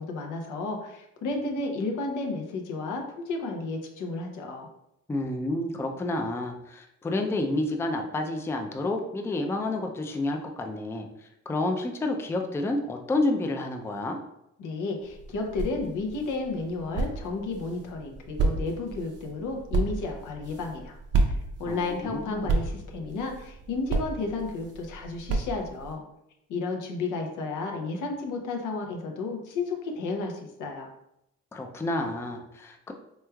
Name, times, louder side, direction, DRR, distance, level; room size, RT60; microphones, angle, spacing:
voice 1, 0.0-4.7 14.6-21.0 21.2-26.0 26.5-30.9, left 3 dB, 85° left, 2 dB, 0.7 m, -32 dB
voice 2, 5.1-11.1 11.5-14.2 21.7-22.5 31.5-32.9, left 2 dB, 10° left, 4 dB, 0.3 m, -29 dB
sound 1, 15.0-25.9, right 3 dB, 55° right, 0.6 m, -32 dB
3.3 x 3.1 x 2.2 m, 0.82 s
cardioid pair, 90°, 30 cm